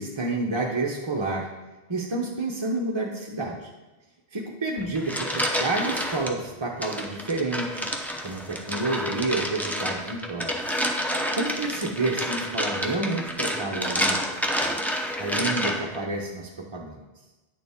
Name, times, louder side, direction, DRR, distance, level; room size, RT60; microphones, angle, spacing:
voice 1, 0.0-1.5 1.9-3.7 4.3-7.9 8.2-10.6 11.3-14.3 14.6-14.7 15.2-17.0, right 2 dB, 30° right, -2 dB, 0.7 m, -29 dB
sound 1, 4.8-6.3 6.8-16.0, equal, ahead, 0.5 m, -29 dB
9.2 x 6.7 x 3.5 m, 1.1 s
omnidirectional pair, 1.1 m